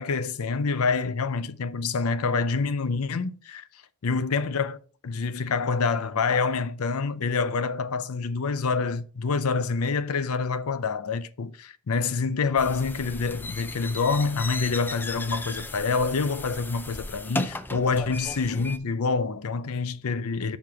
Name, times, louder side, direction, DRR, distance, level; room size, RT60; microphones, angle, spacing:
voice 1, 0.0-3.6 4.0-20.6, left 4 dB, 75° left, 0.6 m, -27 dB
sound 1, 12.6-18.8, left 2 dB, 10° left, 0.4 m, -36 dB
5.4 x 4.8 x 6.1 m
head